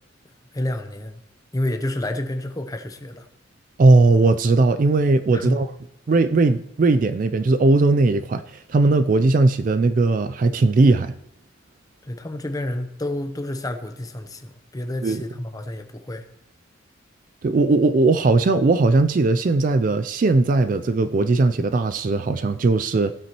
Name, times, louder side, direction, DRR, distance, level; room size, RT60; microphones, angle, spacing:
voice 1, 0.5-1.2 1.5-3.3 5.3-5.6 12.0-16.2, left 1 dB, 15° left, 0.7 m, -29 dB
voice 2, 3.8-5.7 6.1-11.1 15.0-15.2 17.4-23.1, right 3 dB, 40° right, 0.3 m, -18 dB
15.5 x 8.1 x 3.0 m
head